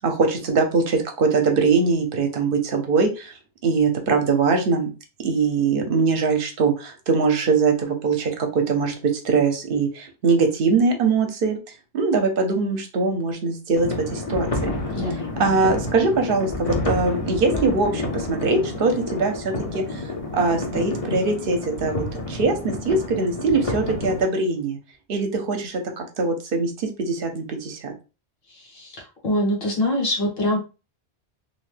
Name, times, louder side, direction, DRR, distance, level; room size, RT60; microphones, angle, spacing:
voice 1, 0.0-3.3 3.6-4.9 5.2-11.6 11.9-14.7 15.4-20.1 20.3-24.8 25.1-27.9, right 4 dB, 60° right, 4 dB, 0.8 m, -22 dB
sound 1, 13.7-24.2, left 2 dB, 40° left, 0.6 m, -29 dB
voice 2, 14.9-15.3 28.5-29.0 29.2-30.6, left 1 dB, 60° left, 0 dB, 1.2 m, -24 dB
2.7 x 2.1 x 3.2 m, 0.31 s
omnidirectional pair, 1.1 m